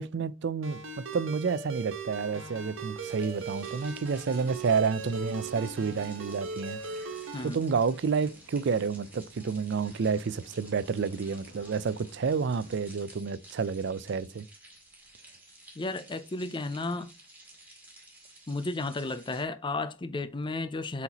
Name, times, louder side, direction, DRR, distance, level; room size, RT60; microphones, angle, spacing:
voice 1, 0.0-6.8 7.4-14.5, right 5 dB, 60° right, 0.4 m, -30 dB
Ringtone, 0.6-7.5, right 3 dB, 85° right, 1.3 m, -39 dB
sound 1, 2.2-12.8, left 2 dB, 85° left, 1.2 m, -55 dB
sound 2, 3.0-19.5, right 1 dB, 10° right, 2.2 m, -53 dB
voice 2, 15.8-17.1 18.5-21.0, left 2 dB, 25° left, 0.5 m, -33 dB
7.9 x 4.3 x 2.9 m
head